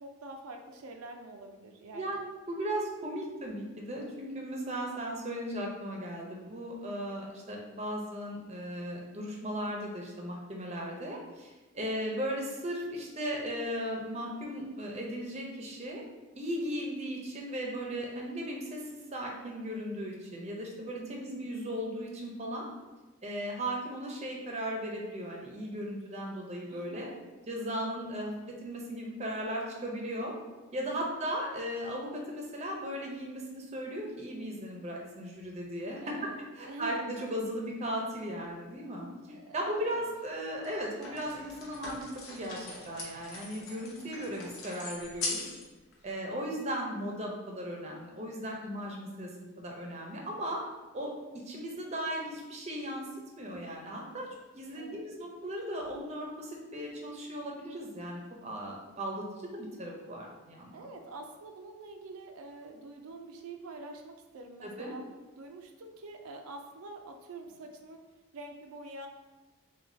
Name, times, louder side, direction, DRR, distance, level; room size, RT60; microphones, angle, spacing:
voice 1, 0.0-2.2 11.8-12.0 21.0-21.4 26.7-27.2 30.8-31.2 36.0-36.4 36.7-37.0 39.3-40.1 54.8-55.1 60.7-65.0 65.4-68.0 68.3-69.1, right 2 dB, 85° right, 3 dB, 0.4 m, -46 dB
voice 2, 1.9-16.0 16.4-18.8 19.1-22.7 23.2-27.1 27.5-30.3 30.7-36.1 36.6-45.5 46.0-50.6 50.9-51.1 51.5-53.1 53.4-54.3 54.5-60.9 64.6-64.9, equal, 30° right, -1 dB, 0.6 m, -37 dB
sound 1, 40.0-40.1 40.6-45.6 45.9-46.0, left 3 dB, 75° left, 0.9 m, -41 dB
6.1 x 2.3 x 2.6 m, 1.2 s
head